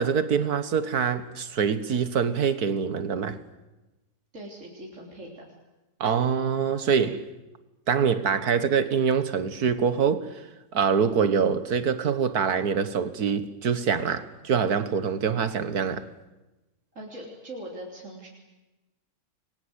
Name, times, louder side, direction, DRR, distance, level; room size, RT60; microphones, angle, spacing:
voice 1, 0.0-3.4 6.0-7.3 7.9-10.4 10.7-16.1, right 6 dB, 70° right, 1.9 m, -25 dB
voice 2, 4.3-5.4 16.9-18.3, right 1 dB, 50° right, 4.2 m, -41 dB
29.5 x 23.0 x 8.1 m
omnidirectional pair, 1.7 m